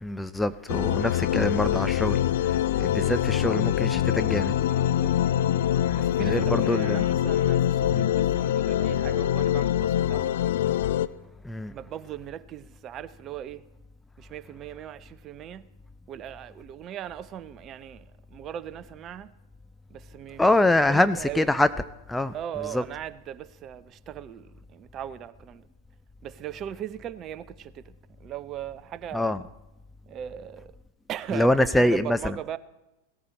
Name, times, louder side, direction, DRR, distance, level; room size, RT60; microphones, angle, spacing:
voice 1, 0.0-2.2 2.4-4.6 5.9-7.0 7.9-8.1 11.4-11.7 20.4-21.7 22.1-22.3 22.7-22.8 29.1-29.4 31.3-32.0, left 1 dB, 5° left, 0.4 m, -24 dB
sound 1, 0.7-11.1, left 11 dB, 55° left, 0.5 m, -24 dB
voice 2, 4.7-5.5 5.9-10.3 11.7-13.7 14.2-15.7 16.1-19.3 19.9-20.6 20.9-21.5 22.3-25.7 26.2-27.9 28.2-29.4 30.1-30.7 31.1-32.6, right 10 dB, 30° right, 0.7 m, -39 dB
18.0 x 13.5 x 4.3 m
figure-of-eight pair, 90°, 0 cm